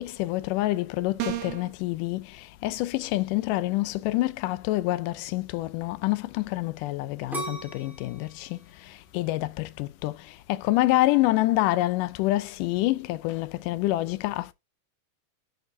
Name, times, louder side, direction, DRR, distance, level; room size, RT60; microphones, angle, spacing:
voice 1, 0.0-2.2 2.6-8.6 9.1-10.2 10.5-14.5, left 17 dB, 90° left, 2.2 m, -27 dB
sound 1, 1.2-1.7, right 13 dB, 65° right, 1.7 m, -31 dB
sound 2, 7.3-10.2 10.7-11.2, right 1 dB, ahead, 1.8 m, -39 dB
10.5 x 5.4 x 2.6 m
omnidirectional pair, 3.7 m